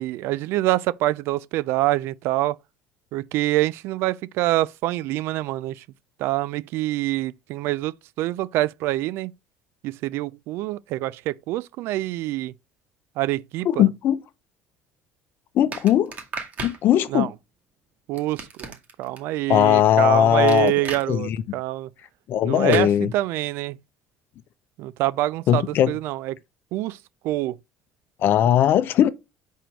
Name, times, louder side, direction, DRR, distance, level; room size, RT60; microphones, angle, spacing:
voice 1, 0.0-2.6 3.1-5.8 6.2-9.3 9.8-12.5 13.2-13.9 17.1-17.3 18.1-21.9 22.4-23.8 24.8-26.4 26.7-27.0 27.2-27.6, right 16 dB, 70° right, 0.4 m, -26 dB
voice 2, 13.6-14.2 15.5-16.1 16.6-17.3 19.5-20.7 21.1-21.6 22.3-23.1 25.5-25.9 28.2-29.1, left 11 dB, 55° left, 0.7 m, -19 dB
sound 1, 15.7-16.8 18.2-19.2 20.5-21.1 22.7-22.9, right 4 dB, 40° right, 1.9 m, -34 dB
5.1 x 4.5 x 6.1 m
cardioid pair, 120°, 4 cm